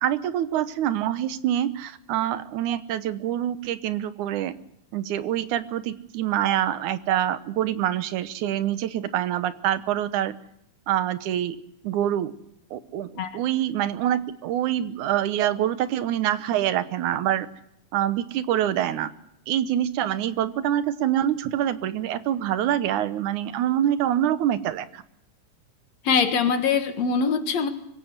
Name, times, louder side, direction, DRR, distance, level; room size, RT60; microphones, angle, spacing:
voice 1, 0.0-4.5 4.9-10.3 10.9-11.6 11.8-12.3 12.7-17.5 17.9-19.1 19.5-25.0, right 11 dB, 85° right, 13 dB, 2.4 m, -25 dB
voice 2, 26.0-27.7, left 5 dB, 65° left, 8 dB, 2.7 m, -23 dB
24.0 x 16.0 x 8.0 m, 0.79 s
omnidirectional pair, 3.4 m